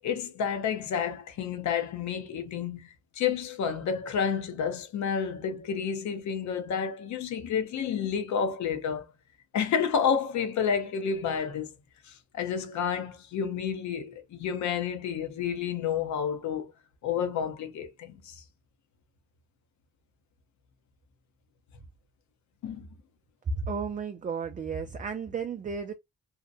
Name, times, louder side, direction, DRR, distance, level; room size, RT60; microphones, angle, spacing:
voice 1, 0.0-9.1 9.5-11.8 12.1-16.7 17.0-18.4 22.6-22.9, left 7 dB, 70° left, 0.8 m, -30 dB
voice 2, 23.5-25.9, right 6 dB, 25° right, 0.4 m, -33 dB
2.7 x 2.1 x 2.4 m
cardioid pair, 90°, 30 cm